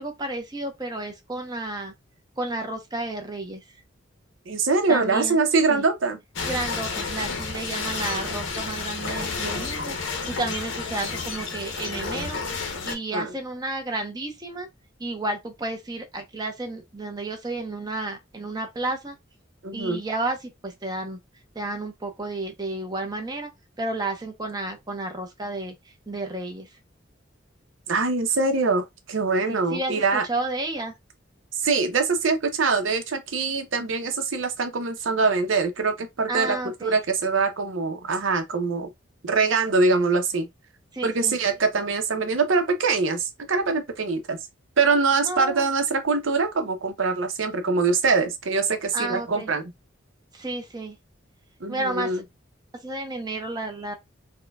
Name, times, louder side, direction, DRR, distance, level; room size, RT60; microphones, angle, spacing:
voice 1, 0.0-1.9 2.4-3.6 4.9-5.4 5.7-5.8 6.5-10.0 10.3-12.4 12.8-14.7 15.0-19.1 19.7-20.4 20.6-21.2 21.6-23.5 23.8-25.7 26.1-26.7 29.5-30.9 36.3-36.9 40.9-41.4 45.2-45.6 48.9-49.5 50.4-51.0 51.7-52.1 52.8-53.9, right 2 dB, 20° right, 0.7 m, -31 dB
voice 2, 4.5-6.2 13.1-13.3 19.6-20.0 27.9-30.3 31.6-38.9 39.2-40.5 41.0-44.4 44.8-49.7 51.6-52.2, right 4 dB, 80° right, 0.7 m, -23 dB
sound 1, 6.4-13.0, left 4 dB, 75° left, 0.7 m, -31 dB
4.2 x 2.2 x 2.2 m
head